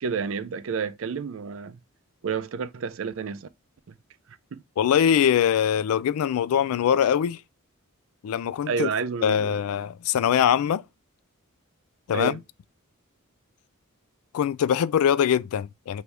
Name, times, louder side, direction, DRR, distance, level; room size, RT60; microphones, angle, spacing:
voice 1, 0.0-1.8 2.2-3.5 4.5-4.6 8.7-9.6 12.1-12.4, right 5 dB, 65° right, 0.4 m, -30 dB
voice 2, 4.8-7.4 8.2-8.9 9.2-10.8 12.1-12.4 14.3-16.0, left 8 dB, 90° left, 0.3 m, -22 dB
3.3 x 2.7 x 4.6 m
head